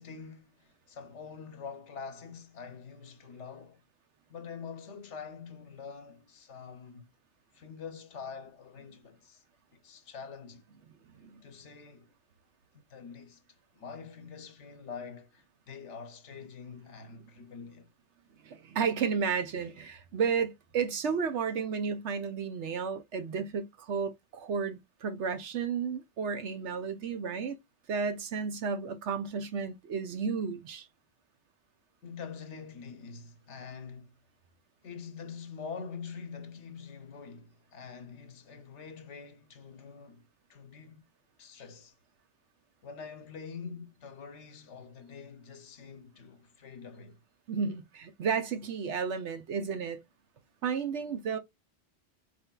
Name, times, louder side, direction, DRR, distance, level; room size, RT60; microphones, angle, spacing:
voice 1, 0.0-3.8 4.3-7.1 7.5-9.4 9.7-10.6 11.4-12.1 12.7-13.4 13.7-17.9 32.0-34.2 34.8-41.0 41.4-41.9 42.8-47.2, left 5 dB, 75° left, 1.1 m, -45 dB
voice 2, 11.1-11.4 18.4-27.6 27.9-30.9 47.5-50.0 50.6-51.4, right 6 dB, 75° right, 1.1 m, -32 dB
4.6 x 3.4 x 2.2 m
omnidirectional pair, 1.2 m